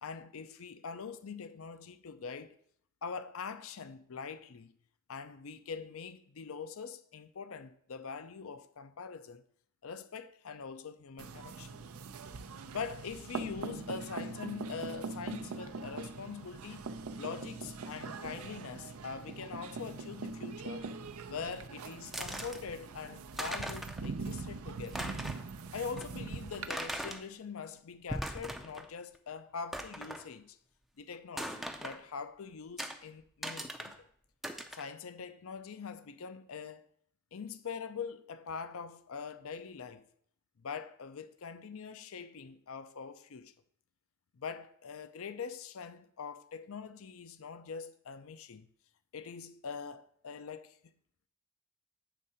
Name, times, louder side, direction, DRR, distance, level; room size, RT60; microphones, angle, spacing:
voice 1, 0.0-2.5 3.0-4.7 5.1-9.4 9.8-11.8 12.7-16.9 17.2-20.9 21.3-25.1 25.7-30.6 31.0-34.1 34.7-36.9 37.3-40.1 40.6-43.5 44.3-48.7 49.1-50.8, left 5 dB, 70° left, 0.5 m, -43 dB
sound 1, 11.2-26.7, right 4 dB, 80° right, 0.6 m, -42 dB
sound 2, 22.1-22.6 23.1-23.2 23.3-24.1 24.4-24.5 24.8-25.5 26.0-26.1 26.7-27.2 27.9-28.9 29.1-29.2 29.7-30.2 31.4-32.0 32.8-33.0 33.4-34.0 34.4-34.8, equal, ahead, 0.5 m, -39 dB
8.2 x 3.7 x 5.6 m
head